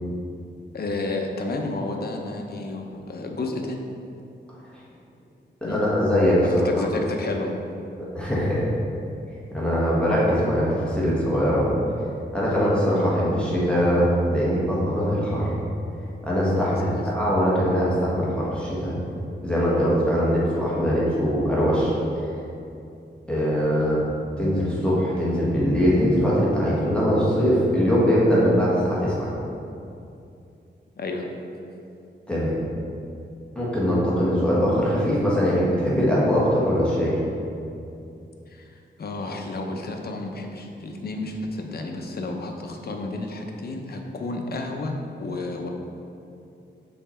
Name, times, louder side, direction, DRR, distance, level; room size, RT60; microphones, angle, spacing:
voice 1, 0.7-3.8 5.6-5.8 6.4-7.6 12.5-12.6 16.6-17.0 31.0-31.3 38.5-45.7, left 2 dB, 55° left, 2 dB, 0.6 m, -31 dB
voice 2, 5.6-6.4 8.1-8.6 9.5-11.7 12.3-15.5 16.2-18.9 19.4-21.9 23.3-24.0 24.4-29.3 32.3-32.5 33.5-37.2, equal, 5° left, -8 dB, 1.4 m, -21 dB
5.6 x 4.2 x 4.3 m, 2.6 s
wide cardioid pair, 135°, 19 cm